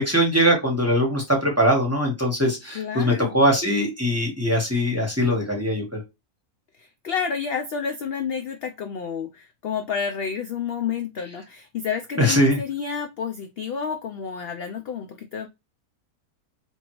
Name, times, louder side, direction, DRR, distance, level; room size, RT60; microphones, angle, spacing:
voice 1, 0.0-6.0 12.2-12.6, equal, 10° right, -1 dB, 1.1 m, -21 dB
voice 2, 2.7-3.4 6.8-15.5, left 6 dB, 70° left, 6 dB, 0.5 m, -30 dB
4.4 x 2.6 x 3.0 m, 0.22 s
omnidirectional pair, 1.5 m